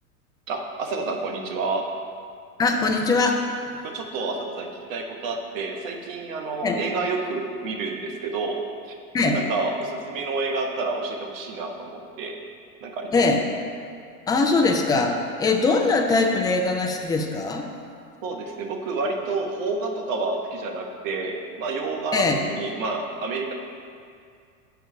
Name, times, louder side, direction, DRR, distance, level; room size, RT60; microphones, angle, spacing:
voice 1, 0.5-1.9 3.8-8.6 8.9-9.0 9.3-12.4 12.8-13.2 18.2-23.5, right 3 dB, 55° right, 3 dB, 1.2 m, -29 dB
voice 2, 2.6-3.4 6.6-6.8 9.1-9.4 13.1-13.4 14.3-17.7 22.1-22.4, left 3 dB, 10° left, 2 dB, 0.4 m, -21 dB
6.1 x 4.7 x 6.6 m, 2.3 s
hypercardioid pair, 100°, 47 cm